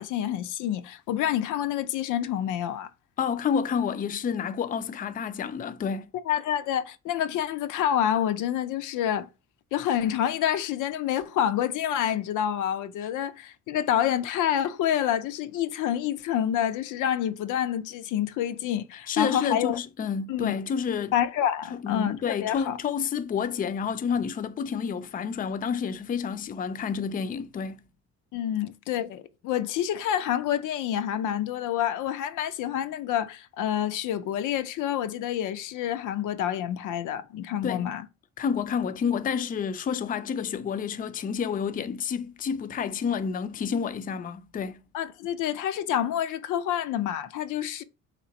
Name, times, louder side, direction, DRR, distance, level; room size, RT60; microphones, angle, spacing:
voice 1, 0.0-2.9 6.3-9.3 9.7-19.8 20.3-20.5 21.1-22.8 28.3-38.1 44.9-47.8, left 10 dB, 85° left, 0.5 m, -28 dB
voice 2, 3.2-6.1 19.1-21.1 21.7-27.8 37.6-37.9 38.4-44.8, left 7 dB, 30° left, 0.4 m, -29 dB
3.3 x 3.0 x 3.9 m
cardioid pair, 90°, 30 cm